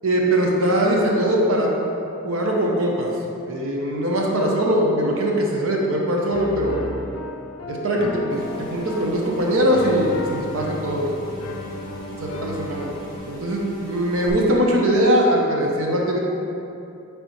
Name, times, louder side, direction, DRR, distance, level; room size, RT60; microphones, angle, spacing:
voice 1, 0.0-1.7 2.2-3.1 3.5-6.8 7.7-11.1 12.2-12.9 13.3-16.2, equal, 70° right, -2 dB, 0.8 m, -21 dB
Piano, 6.3-13.2, left 2 dB, 80° left, 0.4 m, -34 dB
sound 1, 8.3-14.3, equal, 20° left, 1.3 m, -40 dB
9.2 x 3.4 x 3.1 m, 2.8 s
head